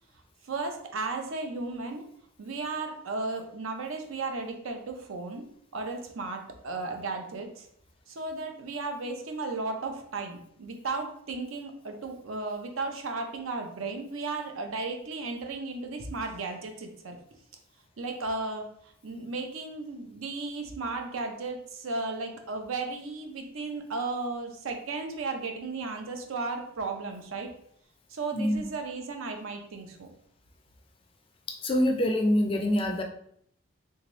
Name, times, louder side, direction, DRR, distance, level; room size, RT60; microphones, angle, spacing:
voice 1, 0.5-2.0 2.4-5.4 5.7-7.7 8.1-17.2 18.0-18.6 19.0-27.5 28.1-30.1, right 3 dB, 75° right, 4 dB, 0.6 m, -35 dB
voice 2, 28.3-28.6 31.5-33.0, left 1 dB, 25° left, 3 dB, 0.3 m, -25 dB
3.4 x 2.8 x 3.0 m, 0.69 s
head